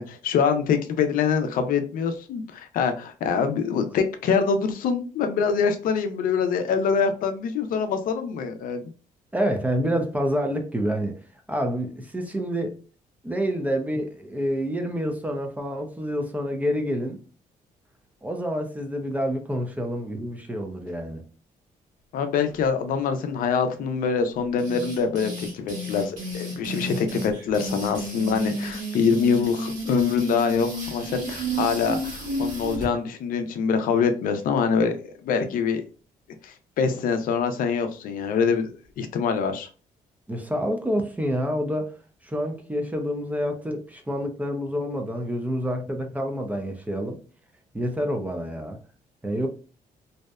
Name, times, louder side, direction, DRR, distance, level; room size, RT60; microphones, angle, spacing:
voice 1, 0.0-8.8 22.1-35.9 36.4-39.7, left 6 dB, 75° left, 0.5 m, -25 dB
voice 2, 9.3-11.2 11.5-12.8 13.2-17.2 18.2-21.2 40.3-42.0 42.2-47.2 47.7-48.8 49.2-49.5, equal, 10° right, 0.4 m, -28 dB
sound 1, 24.6-32.9, right 1 dB, 60° right, 1.3 m, -32 dB
2.7 x 2.1 x 2.3 m
cardioid pair, 105°, 14 cm